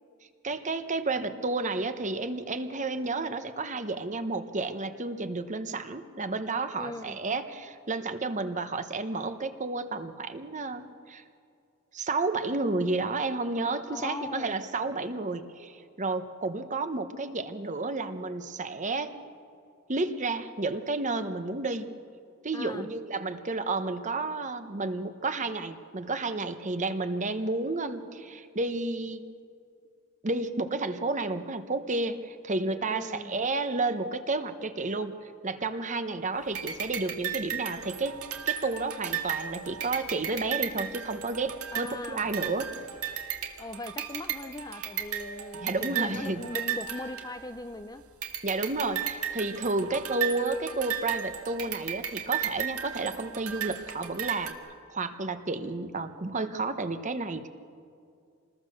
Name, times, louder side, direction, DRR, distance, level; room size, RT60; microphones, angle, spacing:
voice 1, 0.4-11.2 11.9-19.1 19.9-21.9 22.4-29.2 30.2-38.2 38.5-42.7 45.6-46.4 48.4-57.5, right 3 dB, 35° right, 10 dB, 1.0 m, -31 dB
voice 2, 6.8-7.2 13.9-14.6 22.5-22.9 32.9-33.4 41.7-42.3 43.6-48.0, left 2 dB, 15° left, 9 dB, 0.5 m, -40 dB
sound 1, 36.5-47.8 48.2-54.5, right 9 dB, 80° right, 1.9 m, -35 dB
27.5 x 20.5 x 6.6 m, 2.3 s
head